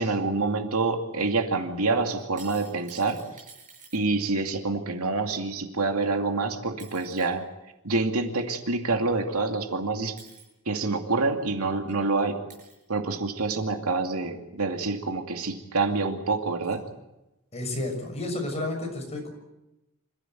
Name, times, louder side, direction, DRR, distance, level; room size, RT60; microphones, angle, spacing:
voice 1, 0.0-3.2 3.9-7.4 7.8-10.2 10.7-12.4 12.9-16.9, right 3 dB, 75° right, 4 dB, 2.5 m, -27 dB
sound 1, 2.1-4.0 6.2-6.3 6.8-7.3 9.1-9.2 10.2-10.5 11.4-11.5 11.9-12.0 12.5-12.8 13.7-13.8, right 4 dB, 35° right, 7.9 m, -49 dB
voice 2, 17.5-19.3, left 2 dB, 30° left, 2 dB, 6.6 m, -31 dB
27.0 x 15.0 x 9.3 m, 0.94 s
head